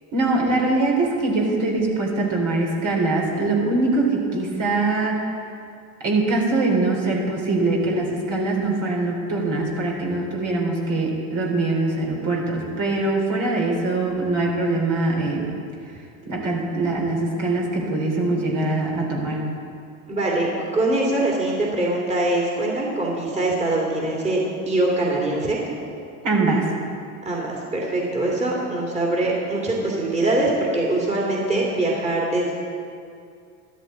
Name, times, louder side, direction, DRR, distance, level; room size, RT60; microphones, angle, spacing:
voice 1, 0.1-5.2 6.0-15.5 16.3-19.4 26.2-26.6, right 2 dB, 45° right, -2 dB, 3.4 m, -23 dB
voice 2, 20.1-24.4 24.6-25.6 27.2-32.5, right 2 dB, 15° right, -4 dB, 3.0 m, -23 dB
13.0 x 12.0 x 4.2 m, 2.4 s
hypercardioid pair, 85°, 42 cm